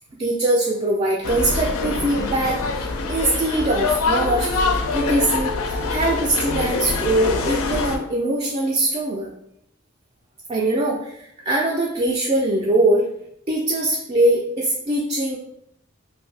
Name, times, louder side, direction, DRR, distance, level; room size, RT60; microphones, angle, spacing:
voice 1, 0.2-4.5 4.9-5.5 5.9-9.3 10.5-11.1 11.4-13.1 13.5-15.4, right 1 dB, 30° right, -3 dB, 0.3 m, -22 dB
sound 1, 1.2-8.0, left 3 dB, 85° left, 0.4 m, -24 dB
2.6 x 2.6 x 3.2 m, 0.72 s
head